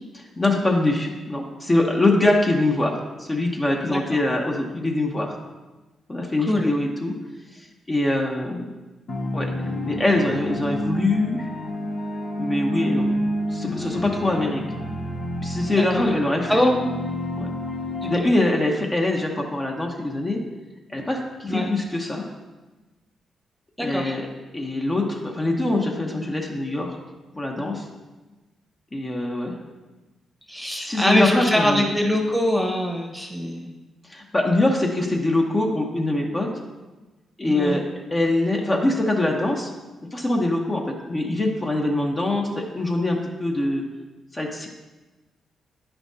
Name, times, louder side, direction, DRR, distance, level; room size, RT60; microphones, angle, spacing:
voice 1, 0.4-5.4 6.1-7.2 7.5-8.7 9.3-9.5 9.8-11.5 12.4-13.1 13.5-14.6 15.4-16.5 17.4-17.5 18.0-20.4 20.9-22.3 23.8-24.3 24.5-27.0 27.4-27.8 28.9-29.6 30.6-31.8 34.1-36.5 37.4-37.8 38.1-39.7 40.1-43.8 44.3-44.7, left 2 dB, 30° left, 0 dB, 1.0 m, -23 dB
voice 2, 3.9-4.2 6.4-6.7 15.7-16.0 16.5-16.7 18.0-18.1 21.5-21.7 23.8-24.1 30.5-33.7 37.4-37.8, left 1 dB, ahead, 1 dB, 1.1 m, -23 dB
sound 1, 9.1-18.2, equal, 65° left, 1.0 m, -29 dB
9.5 x 5.7 x 2.8 m, 1.2 s
supercardioid pair, 60°, 0 cm